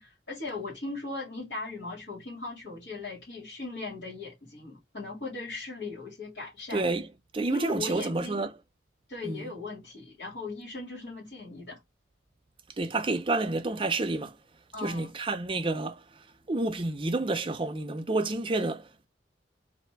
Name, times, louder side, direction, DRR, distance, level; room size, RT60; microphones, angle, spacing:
voice 1, 0.0-6.9 7.5-8.5 9.1-11.8 14.7-15.1, left 3 dB, 80° left, 2.1 m, -38 dB
voice 2, 6.7-7.1 7.3-8.5 9.2-9.5 12.8-14.4 14.8-16.0 16.5-19.1, right 2 dB, 30° right, 0.5 m, -29 dB
3.4 x 2.6 x 4.5 m
head